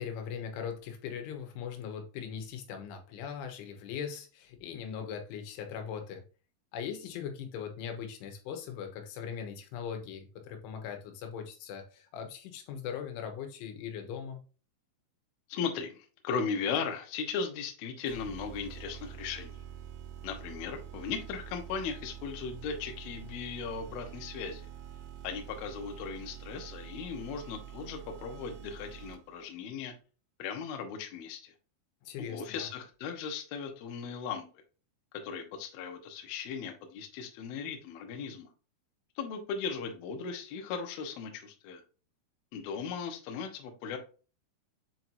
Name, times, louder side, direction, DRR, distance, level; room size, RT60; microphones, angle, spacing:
voice 1, 0.0-6.2 6.7-14.4 32.0-32.7, left 7 dB, 90° left, 3.6 m, -40 dB
voice 2, 15.5-19.6 20.2-24.7 25.2-29.9 30.4-31.5 32.2-34.5 35.2-38.5 39.2-41.8 42.5-44.0, left 6 dB, 70° left, 2.6 m, -37 dB
sound 1, 18.1-29.5, right 9 dB, 85° right, 3.4 m, -46 dB
7.7 x 4.6 x 2.7 m
omnidirectional pair, 5.4 m